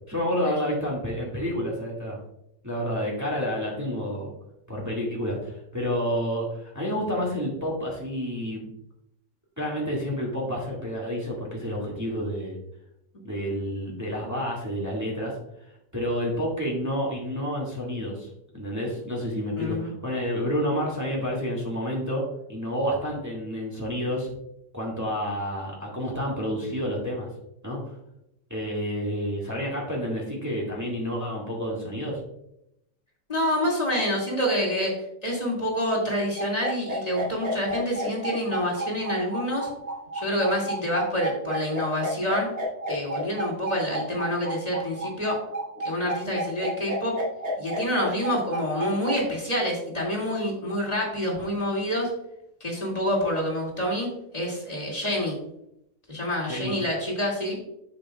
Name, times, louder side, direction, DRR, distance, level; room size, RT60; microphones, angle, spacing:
voice 1, 0.1-2.2 2.6-4.3 4.7-8.6 9.6-12.6 13.2-15.3 15.9-18.3 18.5-24.3 24.7-27.3 27.6-27.8 28.5-32.2 56.5-56.7, equal, 10° right, -3 dB, 2.1 m, -29 dB
voice 2, 19.6-19.9 33.3-34.9 35.2-39.7 40.1-42.5 42.9-45.4 45.8-47.2 47.6-52.1 52.6-54.1 54.3-55.3 56.1-57.6, equal, 25° left, -3 dB, 2.5 m, -27 dB
sound 1, 36.4-49.2, right 1 dB, 40° right, 3.2 m, -31 dB
9.9 x 7.2 x 2.4 m, 0.79 s
omnidirectional pair, 1.7 m